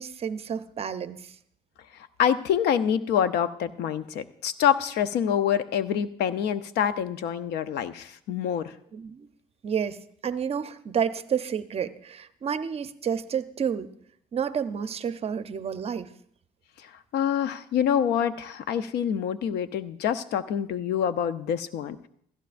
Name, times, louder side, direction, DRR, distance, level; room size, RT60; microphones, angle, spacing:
voice 1, 0.0-1.4 8.9-9.3 9.6-13.9 14.3-16.1, right 7 dB, 35° right, 12 dB, 0.6 m, -30 dB
voice 2, 2.2-8.7 17.1-22.1, left 9 dB, 75° left, 13 dB, 0.6 m, -26 dB
15.5 x 14.0 x 2.5 m, 0.67 s
cardioid pair, 110°, 17 cm